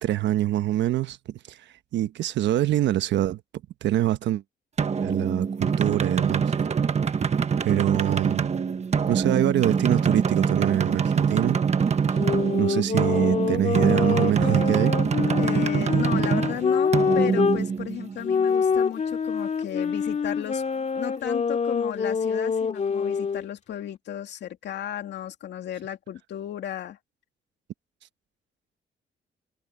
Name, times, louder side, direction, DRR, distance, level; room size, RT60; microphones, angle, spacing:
voice 1, 0.0-1.6 1.9-3.4 3.8-4.4 5.0-6.4 7.6-8.5 9.1-11.6 12.6-15.0, right 13 dB, 90° right, 1.1 m, -24 dB
sound 1, 4.8-18.3, right 6 dB, 40° right, 1.3 m, -24 dB
sound 2, 12.1-17.6 18.2-23.4, left 6 dB, 40° left, 2.3 m, -26 dB
voice 2, 15.4-20.6 20.9-27.0, left 10 dB, 75° left, 2.6 m, -34 dB
cardioid pair, 110°, 18 cm